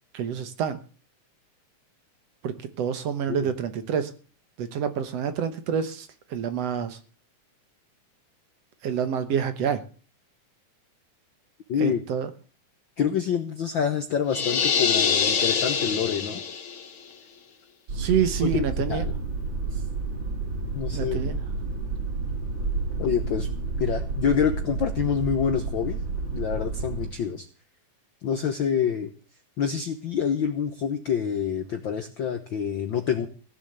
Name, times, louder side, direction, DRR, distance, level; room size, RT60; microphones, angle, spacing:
voice 1, 0.1-0.8 2.4-4.1 4.6-7.0 8.8-9.8 11.8-12.3 17.9-19.1 20.9-21.4, right 8 dB, 60° right, 10 dB, 2.0 m, -27 dB
voice 2, 11.7-12.0 13.0-16.4 18.4-19.1 19.7-19.8 20.7-21.3 23.0-23.5 23.8-26.0 26.3-27.5 28.2-29.1 29.6-33.3, left 7 dB, 65° left, 8 dB, 1.2 m, -27 dB
sound 1, 14.3-16.9, left 6 dB, 50° left, 2.0 m, -24 dB
sound 2, 17.9-27.1, right 3 dB, 35° right, 4.0 m, -30 dB
16.5 x 7.2 x 8.0 m, 0.39 s
omnidirectional pair, 3.5 m